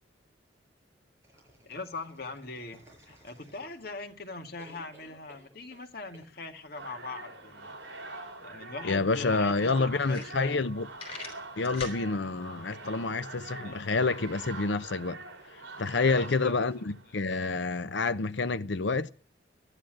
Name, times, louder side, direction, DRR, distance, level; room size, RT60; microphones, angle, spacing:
sound 1, 1.2-4.1 4.6-5.9 6.1-6.3, right 1 dB, 15° right, 6.7 m, -57 dB
voice 1, 1.6-7.7 8.4-10.6 13.6-14.2 15.9-16.7, left 3 dB, 50° left, 2.2 m, -41 dB
sound 2, 6.8-17.2, right 3 dB, 75° right, 4.9 m, -44 dB
voice 2, 8.8-10.9 11.6-15.2 15.5-19.1, left 3 dB, 65° left, 0.7 m, -28 dB
sound 3, 10.0-10.7 11.0-12.0, left 4 dB, 30° left, 5.3 m, -41 dB
14.5 x 11.0 x 7.7 m
head